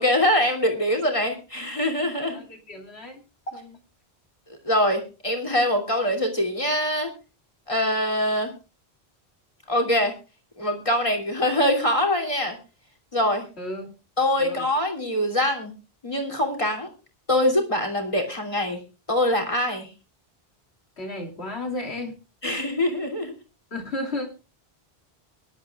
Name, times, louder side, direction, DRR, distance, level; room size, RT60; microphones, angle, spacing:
voice 1, 0.0-2.4 4.6-7.1 7.7-8.5 9.7-10.1 10.6-12.6 13.1-13.4 14.2-15.7 16.0-16.9 17.3-18.8 19.1-19.9 22.4-23.3, left 1 dB, 30° left, 2 dB, 3.1 m, -23 dB
voice 2, 2.3-3.8 13.6-13.9 14.4-14.6 21.0-22.1 23.7-24.3, left 1 dB, 90° left, 3 dB, 3.1 m, -33 dB
23.0 x 11.5 x 2.4 m, 0.31 s
omnidirectional pair, 1.1 m